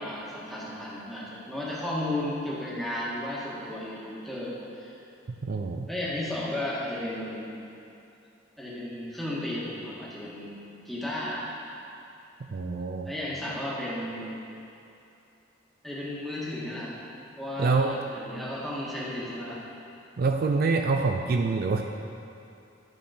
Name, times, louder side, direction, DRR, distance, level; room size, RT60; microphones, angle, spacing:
voice 1, 0.0-5.0 5.9-7.5 8.6-10.5 10.9-11.5 13.0-14.4 15.8-16.9 17.4-19.6, left 1 dB, ahead, -7 dB, 1.7 m, -34 dB
voice 2, 5.4-5.9 12.5-13.1 17.6-17.9 20.2-21.8, right 4 dB, 50° right, 4 dB, 0.4 m, -26 dB
10.5 x 5.3 x 5.0 m, 2.8 s
head